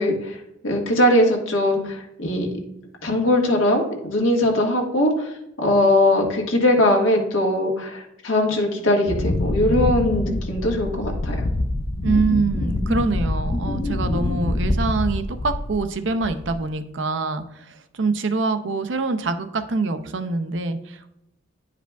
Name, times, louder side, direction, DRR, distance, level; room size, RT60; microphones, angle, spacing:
voice 1, 0.0-2.5 3.0-11.5, left 1 dB, 85° left, 0 dB, 1.5 m, -20 dB
Wind, 9.1-15.9 16.2-16.7, left 1 dB, 25° left, 0.3 m, -25 dB
voice 2, 12.0-21.1, right 3 dB, 65° right, 9 dB, 0.5 m, -25 dB
10.0 x 4.9 x 2.3 m, 0.83 s
head